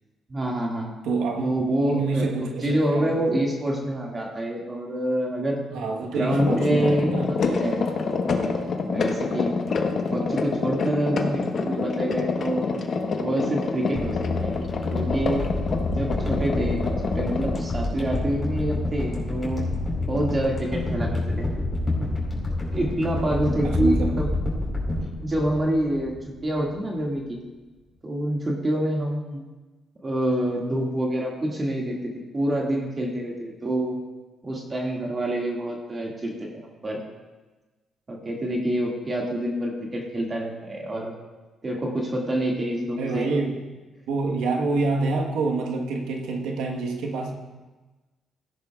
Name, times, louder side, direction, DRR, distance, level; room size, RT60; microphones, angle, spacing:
voice 1, 0.3-0.9 1.4-2.3 2.6-5.6 6.0-8.5 8.8-9.5 10.1-12.7 13.2-14.5 14.9-15.5 16.0-19.6 20.1-21.5 22.7-24.3 25.0-26.1 26.4-27.4 28.0-29.5 30.0-32.0 32.3-34.0 34.4-36.5 36.8-37.0 38.1-41.1 41.6-43.3, right 1 dB, 30° right, -1 dB, 2.0 m, -27 dB
voice 2, 1.0-1.5 1.9-3.1 5.7-7.3 23.6-24.1 43.0-43.6 44.1-47.4, right 3 dB, 90° right, 0 dB, 1.3 m, -27 dB
sound 1, 6.3-17.6, left 4 dB, 55° left, 1.2 m, -27 dB
sound 2, 14.0-26.3 26.6-26.7, left 2 dB, 20° left, 4.1 m, -28 dB
16.0 x 10.5 x 2.4 m, 1.2 s
cardioid pair, 90°, 0 cm